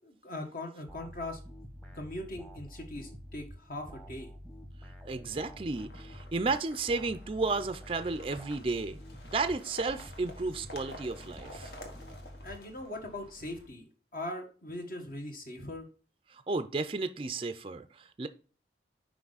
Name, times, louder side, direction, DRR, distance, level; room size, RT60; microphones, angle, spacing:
voice 1, 0.0-1.4 1.9-4.3 12.4-13.9 14.1-15.9, left 1 dB, 50° left, 1.5 m, -40 dB
sound 1, 0.9-13.1, equal, 5° left, 0.9 m, -48 dB
voice 2, 5.1-9.0 9.3-11.7 16.3-18.3, right 3 dB, 30° right, 0.4 m, -33 dB
sound 2, 5.7-13.7, left 1 dB, 70° left, 1.5 m, -51 dB
5.9 x 4.9 x 4.0 m
head